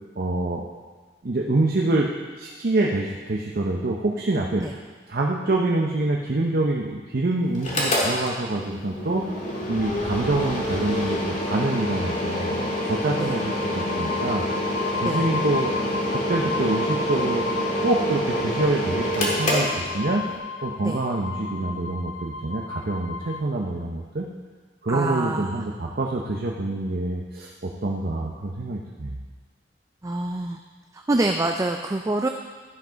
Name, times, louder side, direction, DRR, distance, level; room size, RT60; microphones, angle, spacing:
voice 1, 0.2-0.6 1.2-2.1 2.4-4.6 5.1-9.3 9.7-14.5 15.0-17.4 17.8-20.2 20.6-24.3 24.8-29.2, right 2 dB, 55° right, -1 dB, 0.8 m, -26 dB
Mechanical fan, 7.6-20.4, equal, 45° left, 2.0 m, -27 dB
sound 1, 12.6-23.4, left 4 dB, 75° left, 0.6 m, -34 dB
voice 2, 24.9-25.5 30.0-30.6 30.9-32.3, right 2 dB, 20° right, 4 dB, 0.4 m, -26 dB
12.0 x 5.9 x 5.2 m, 1.4 s
head